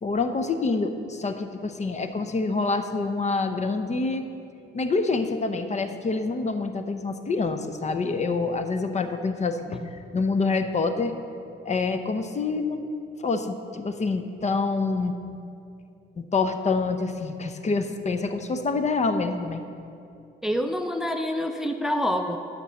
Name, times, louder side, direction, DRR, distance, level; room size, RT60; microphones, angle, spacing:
voice 1, 0.0-4.3 4.7-9.8 10.1-11.1 11.7-12.9 13.2-15.1 16.2-19.6, left 3 dB, 35° left, 8 dB, 0.7 m, -26 dB
voice 2, 20.4-22.4, equal, ahead, 6 dB, 0.5 m, -27 dB
11.0 x 5.3 x 7.1 m, 2.6 s
cardioid pair, 90°, 20 cm